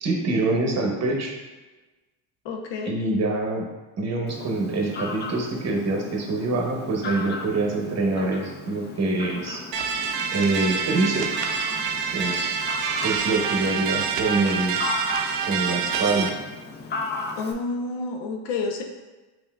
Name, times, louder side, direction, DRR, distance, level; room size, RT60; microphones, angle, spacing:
voice 1, 0.0-1.3 2.9-3.7 4.0-9.6 10.3-11.3 12.1-12.6 13.0-14.8 15.4-16.3, right 2 dB, 40° right, 1 dB, 0.9 m, -25 dB
voice 2, 2.4-3.0 17.4-18.8, left 3 dB, 80° left, 3 dB, 0.7 m, -29 dB
Fowl, 4.3-17.5, left 3 dB, 25° left, 0.4 m, -36 dB
sound 1, 9.7-16.3, right 6 dB, 80° right, 0.5 m, -27 dB
5.4 x 2.7 x 2.3 m, 1.2 s
cardioid pair, 100°, 42 cm